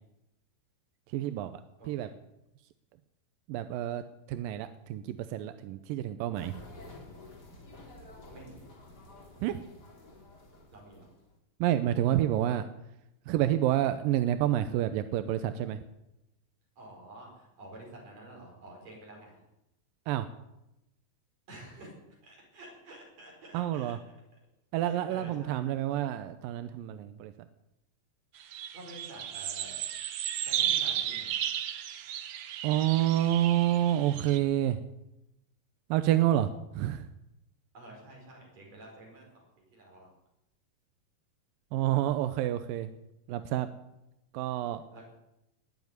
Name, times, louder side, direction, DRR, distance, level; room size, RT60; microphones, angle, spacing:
voice 1, 1.1-1.6 1.9-2.1 3.5-4.0 4.3-6.5 9.4-9.6 11.6-12.6 13.3-15.8 20.1-20.3 23.5-24.0 24.7-27.3 32.6-34.8 35.9-37.0 41.7-42.9 43.3-43.7 44.3-44.8, right 12 dB, 90° right, 10 dB, 2.4 m, -28 dB
voice 2, 1.8-2.2 8.3-8.6 10.7-11.1 16.8-19.4 21.5-21.9 22.2-23.9 24.8-25.6 28.7-29.8 30.4-31.4 37.7-40.1 44.9-45.1, right 1 dB, 50° right, -1 dB, 6.4 m, -49 dB
sound 1, 6.3-11.4, left 2 dB, 30° left, 3.2 m, -51 dB
sound 2, 28.4-34.4, right 10 dB, 65° right, 1.7 m, -34 dB
20.0 x 7.3 x 9.6 m, 0.90 s
omnidirectional pair, 3.9 m